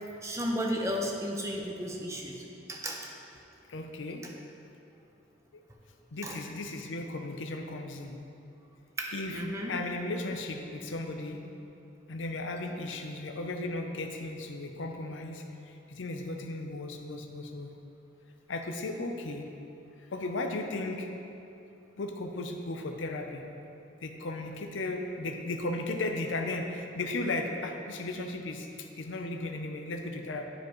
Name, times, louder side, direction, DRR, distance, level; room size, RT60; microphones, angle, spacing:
voice 1, 0.2-2.4 2.7-3.1 6.2-6.4 9.0-9.7, equal, 15° right, 0 dB, 0.6 m, -33 dB
voice 2, 3.7-4.2 5.5-5.6 6.1-8.2 9.1-11.4 12.1-17.7 18.5-19.4 20.1-21.1 22.0-23.4 24.0-28.7 29.0-30.4, left 2 dB, 90° left, 4 dB, 0.6 m, -35 dB
11.0 x 4.9 x 3.1 m, 2.8 s
head